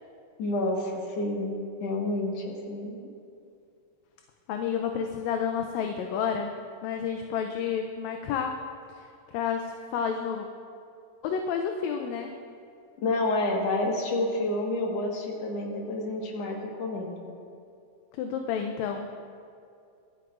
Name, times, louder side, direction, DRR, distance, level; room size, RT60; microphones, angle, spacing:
voice 1, 0.4-1.5 1.8-3.0 13.0-17.1, left 2 dB, 60° left, -1 dB, 2.6 m, -29 dB
voice 2, 4.5-6.5 6.8-8.6 8.9-9.1 9.3-10.5 11.2-12.3 18.2-19.2, left 7 dB, 80° left, 4 dB, 1.8 m, -30 dB
24.0 x 9.5 x 2.5 m, 2.4 s
omnidirectional pair, 3.4 m